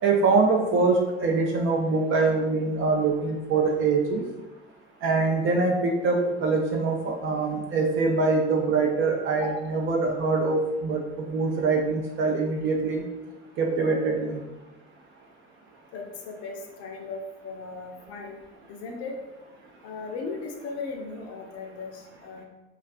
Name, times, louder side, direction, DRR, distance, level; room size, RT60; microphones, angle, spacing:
voice 1, 0.0-4.2 5.0-13.0 13.6-14.4, right 3 dB, 40° right, 1 dB, 0.4 m, -24 dB
voice 2, 9.3-9.7 15.9-18.4 18.7-19.1 19.8-22.4, left 4 dB, 45° left, 1 dB, 0.5 m, -37 dB
2.3 x 2.3 x 2.5 m, 1.1 s
hypercardioid pair, 65°, 34 cm